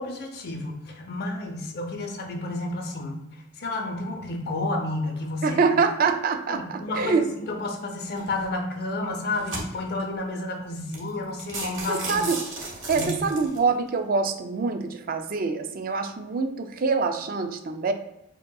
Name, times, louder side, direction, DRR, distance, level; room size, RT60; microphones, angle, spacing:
voice 1, 0.0-5.6 6.5-12.2 12.9-13.3, left 2 dB, 55° left, 3 dB, 0.7 m, -31 dB
voice 2, 5.4-7.2 11.9-12.4 12.9-17.9, right 4 dB, 50° right, 7 dB, 0.4 m, -25 dB
sound 1, 8.2-8.4 9.0-10.0 10.6-10.7 10.9-11.1 11.4-13.6, right 3 dB, 70° right, 1.4 m, -34 dB
5.0 x 2.8 x 2.3 m, 0.90 s
head